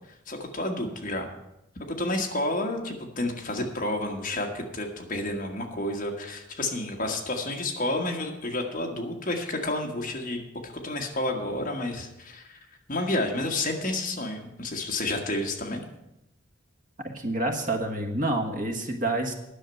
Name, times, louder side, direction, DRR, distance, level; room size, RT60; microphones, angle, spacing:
voice 1, 0.3-1.3 2.0-12.6 12.9-15.8, left 1 dB, 40° left, 2 dB, 1.5 m, -30 dB
voice 2, 17.0-19.3, right 2 dB, 40° right, 4 dB, 1.4 m, -28 dB
10.5 x 6.6 x 8.9 m, 0.88 s
head